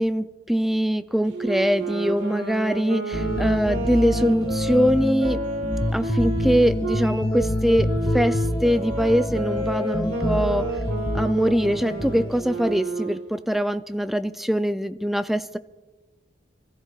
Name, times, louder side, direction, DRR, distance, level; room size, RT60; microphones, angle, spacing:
voice 1, 0.0-5.4 5.9-10.7 11.1-15.6, equal, ahead, 11 dB, 0.3 m, -23 dB
Wind instrument woodwind instrument, 1.3-7.1 7.8-13.3, right 2 dB, 80° right, 1.7 m, -31 dB
sound 1, 3.1-12.7, left 1 dB, 20° left, 0.8 m, -27 dB
27.5 x 14.5 x 2.4 m, 1.2 s
head